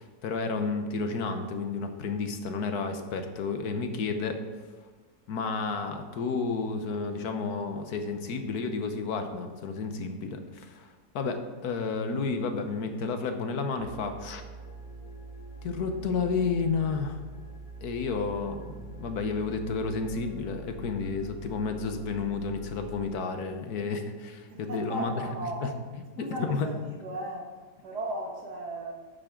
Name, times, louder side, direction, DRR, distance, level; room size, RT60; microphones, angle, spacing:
voice 1, 0.0-4.4 5.3-10.9 11.1-14.4 15.6-17.2 17.8-25.1 25.6-25.7 26.4-26.7, left 4 dB, 75° left, 7 dB, 1.4 m, -31 dB
sound 1, 13.8-23.1, right 2 dB, 40° left, 1.9 m, -44 dB
voice 2, 24.5-25.8 26.2-29.0, right 1 dB, 90° right, 0 dB, 2.2 m, -36 dB
10.5 x 7.8 x 3.7 m, 1.4 s
omnidirectional pair, 1.7 m